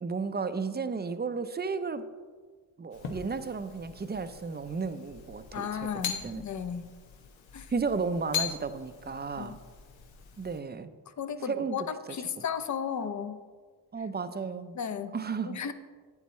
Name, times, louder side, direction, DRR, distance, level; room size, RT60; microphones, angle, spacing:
voice 1, 0.0-2.0 2.8-5.7 6.0-6.4 7.7-9.6 10.4-10.9 11.5-11.8 12.1-12.4 13.9-14.8 15.1-15.6, right 5 dB, 20° right, 11 dB, 0.5 m, -33 dB
sound 1, 2.9-10.6, left 8 dB, 90° left, 1.0 m, -41 dB
voice 2, 5.5-6.9 7.5-7.7 9.4-9.6 11.2-13.4 14.7-15.2 15.4-15.7, left 7 dB, 40° left, 11 dB, 0.6 m, -34 dB
9.2 x 8.2 x 3.2 m, 1.5 s
cardioid pair, 60°, 45 cm